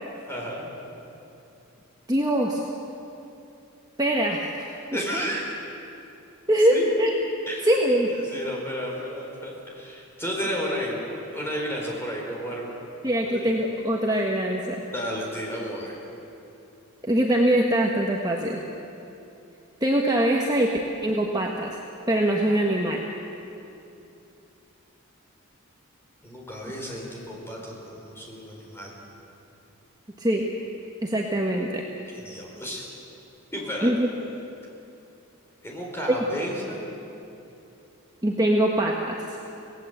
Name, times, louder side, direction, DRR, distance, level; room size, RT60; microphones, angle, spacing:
voice 1, 0.3-0.7 4.9-5.5 6.7-6.9 7.5-12.8 13.2-13.4 14.9-16.0 26.2-29.0 32.1-32.9 33.5-33.9 35.6-36.9, equal, 10° left, -2 dB, 4.5 m, -32 dB
voice 2, 2.1-2.6 4.0-4.7 5.1-5.3 6.5-7.2 7.6-8.1 13.0-14.8 17.1-18.6 19.8-20.7 21.0-21.7 22.1-23.0 30.2-30.5 31.0-31.8 33.8-34.1 36.1-36.2 38.2-39.4, right 1 dB, 15° right, -1 dB, 1.3 m, -23 dB
26.5 x 18.0 x 8.1 m, 2.8 s
head